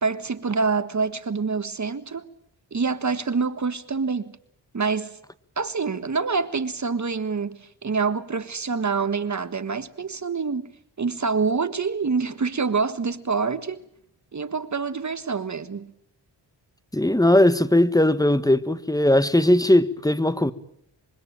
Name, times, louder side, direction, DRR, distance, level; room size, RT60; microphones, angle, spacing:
voice 1, 0.0-2.3 2.7-4.4 4.7-5.2 5.6-10.7 11.0-13.8 14.3-15.9, right 4 dB, 40° right, 1.5 m, -26 dB
voice 2, 16.9-20.5, left 1 dB, 10° left, 1.6 m, -19 dB
25.5 x 23.5 x 8.9 m
cardioid pair, 65°, 45 cm